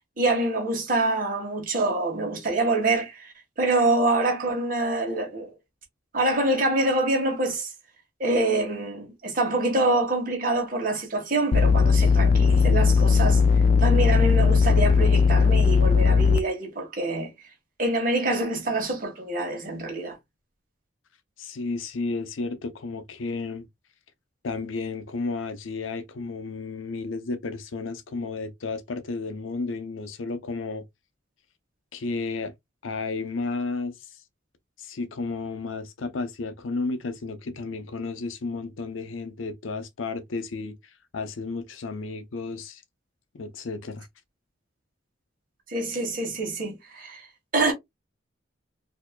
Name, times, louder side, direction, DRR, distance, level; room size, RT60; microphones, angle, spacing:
voice 1, 0.2-3.3 3.6-5.5 6.1-7.7 8.2-13.4 13.8-17.3 17.8-20.2 45.7-47.3 47.5-47.7, right 2 dB, 45° right, 1.5 m, -25 dB
sound 1, 11.5-16.4, left 5 dB, 45° left, 0.3 m, -18 dB
voice 2, 21.4-23.7 24.4-30.8 31.9-32.5 32.8-33.9 34.8-40.7 41.1-42.8 43.3-44.1, left 3 dB, 90° left, 0.6 m, -32 dB
4.3 x 2.8 x 2.2 m
head